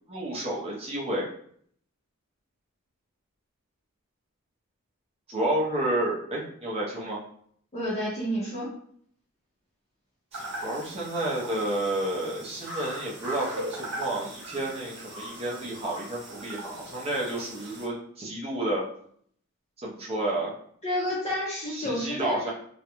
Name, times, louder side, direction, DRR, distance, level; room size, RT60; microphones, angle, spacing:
voice 1, 0.1-1.3 5.3-7.2 10.3-18.8 19.8-20.5 21.7-22.5, right 1 dB, 25° right, -4 dB, 0.5 m, -30 dB
voice 2, 7.7-8.7 20.8-22.5, equal, 30° left, -5 dB, 0.6 m, -30 dB
sound 1, 10.3-17.9, right 1 dB, 55° right, 0.8 m, -39 dB
2.4 x 2.1 x 2.9 m, 0.62 s
head